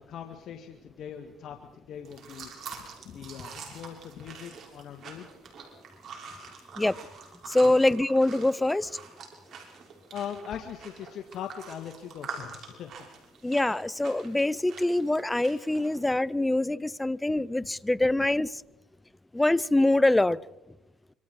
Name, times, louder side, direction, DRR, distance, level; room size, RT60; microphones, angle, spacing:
voice 1, 0.0-2.5 3.0-5.3 7.6-7.7 10.1-13.0, left 8 dB, 60° left, 1.9 m, -40 dB
sound 1, 2.0-16.0, right 5 dB, 55° right, 6.1 m, -46 dB
voice 2, 7.5-8.9 13.4-18.6 19.3-20.4, left 2 dB, 10° left, 0.7 m, -24 dB
26.5 x 25.5 x 4.7 m
supercardioid pair, 90°, 0 cm